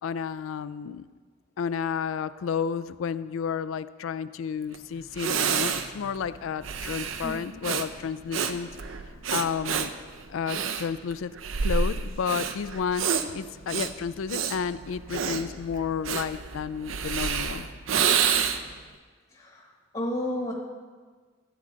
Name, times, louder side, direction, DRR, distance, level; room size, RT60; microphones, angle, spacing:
voice 1, 0.0-1.1 1.6-8.7 9.3-9.9 10.3-11.3 11.6-13.1 13.3-17.7, left 6 dB, 90° left, 15 dB, 0.4 m, -31 dB
Breathing, 4.7-4.8 5.1-18.8, right 6 dB, 80° right, 0.6 m, -29 dB
voice 2, 19.3-20.5, left 1 dB, 30° left, -1 dB, 1.1 m, -32 dB
13.5 x 7.6 x 3.9 m, 1.5 s
head